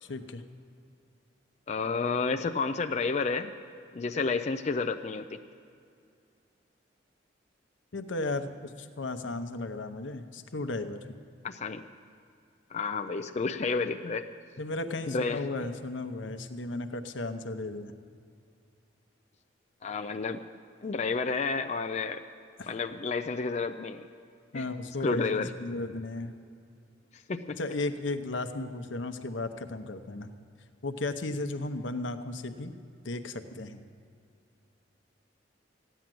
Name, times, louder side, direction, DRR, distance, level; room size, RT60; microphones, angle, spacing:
voice 1, 0.0-0.4 7.9-11.1 14.6-17.9 22.6-22.7 24.5-26.3 27.6-30.3 30.8-32.7 33.0-33.8, left 2 dB, 85° left, 8 dB, 0.8 m, -35 dB
voice 2, 1.7-3.5 3.9-5.4 11.4-11.8 12.7-14.3 15.1-15.4 19.8-20.4 20.8-22.2 22.7-24.1 24.5-24.7 25.0-25.5 27.3-27.6, left 4 dB, 35° left, 6 dB, 0.4 m, -30 dB
14.5 x 10.0 x 7.7 m, 2.4 s
head